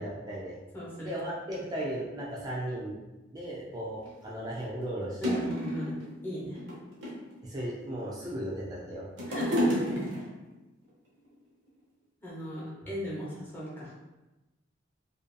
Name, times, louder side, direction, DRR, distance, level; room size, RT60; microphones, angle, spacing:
voice 1, 0.0-0.5 1.0-3.0 3.3-5.4 7.4-9.1, right 1 dB, 20° right, -5 dB, 0.4 m, -36 dB
voice 2, 0.7-1.1 5.2-6.0 6.2-6.6 9.3-9.8 12.2-13.9, equal, 10° left, -7 dB, 0.7 m, -37 dB
sound 1, 4.0-4.1 4.8-4.9 5.2-6.1 6.6-7.3 8.0-8.6 8.9-10.5 11.3-11.4, equal, 70° right, 0.7 m, -30 dB
2.6 x 2.5 x 2.2 m, 1.1 s
head